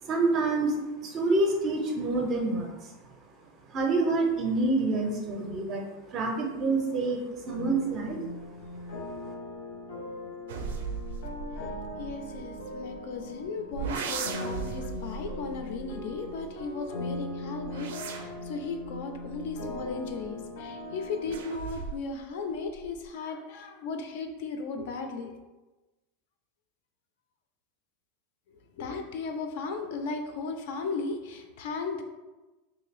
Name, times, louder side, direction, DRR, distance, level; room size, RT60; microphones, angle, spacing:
voice 1, 0.0-2.9 3.7-8.2, right 2 dB, 25° right, 2 dB, 0.5 m, -27 dB
sound 1, 7.5-21.4, left 2 dB, 90° left, 0.9 m, -40 dB
sound 2, 10.5-13.2 13.7-16.8 17.4-20.5 21.3-22.2 22.5-23.1, right 6 dB, 85° right, 0.4 m, -39 dB
voice 2, 11.7-25.4 28.8-32.0, left 4 dB, 55° left, 5 dB, 0.4 m, -36 dB
3.2 x 2.6 x 3.3 m, 1.1 s
supercardioid pair, 175°, 0 cm